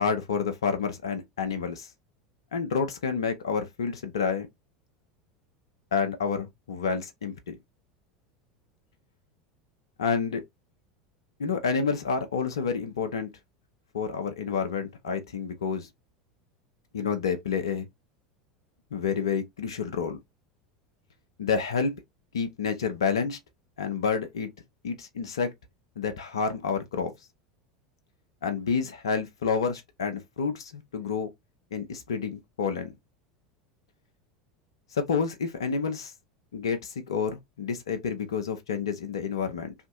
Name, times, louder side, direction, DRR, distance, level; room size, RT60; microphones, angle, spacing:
voice 1, 0.0-1.9 2.5-4.5 5.9-7.6 10.0-10.4 11.4-13.3 13.9-15.9 16.9-17.9 18.9-20.2 21.4-21.9 22.3-23.4 23.8-24.5 24.8-25.5 26.0-27.1 28.4-31.3 31.7-32.9 34.9-36.1 36.5-39.7, left 5 dB, 70° left, 0.5 m, -29 dB
2.8 x 2.5 x 2.3 m
figure-of-eight pair, 80°, 3 cm